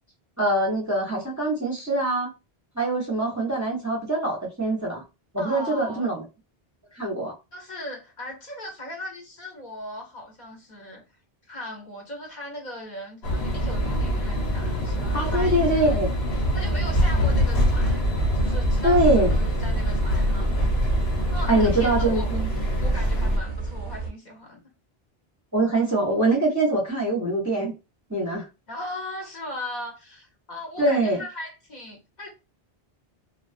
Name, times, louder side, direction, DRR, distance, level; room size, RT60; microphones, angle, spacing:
voice 1, 0.4-2.3 2.8-5.0 5.3-6.2 6.9-7.3 15.1-16.1 18.8-19.3 21.5-22.5 25.5-27.7 28.1-28.5 30.8-31.2, right 2 dB, 20° right, 0.6 m, -23 dB
voice 2, 5.4-6.1 7.5-11.0 11.5-16.0 16.5-18.1 18.3-20.5 21.3-22.4 22.8-24.6 28.7-32.3, left 1 dB, 50° left, 0.9 m, -38 dB
sound 1, 13.2-23.4, equal, 80° left, 1.2 m, -24 dB
sound 2, 15.2-15.5 15.9-16.0 16.4-24.1, right 4 dB, 60° right, 0.6 m, -34 dB
2.3 x 2.3 x 2.4 m
omnidirectional pair, 1.0 m